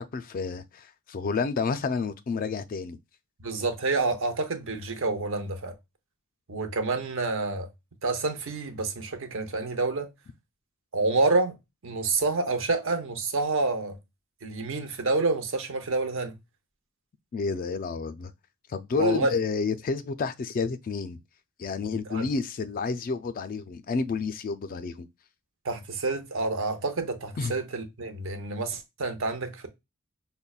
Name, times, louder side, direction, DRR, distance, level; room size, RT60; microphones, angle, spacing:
voice 1, 0.0-3.0 17.3-18.3 18.7-21.2 21.6-25.1 27.4-27.5, left 4 dB, 40° left, 0.3 m, -30 dB
voice 2, 3.4-5.7 6.5-7.7 8.0-10.1 10.9-11.5 11.8-14.0 14.4-16.4 18.9-19.3 21.8-22.3 25.6-29.7, right 3 dB, 60° right, 0.7 m, -28 dB
5.2 x 2.1 x 2.3 m
head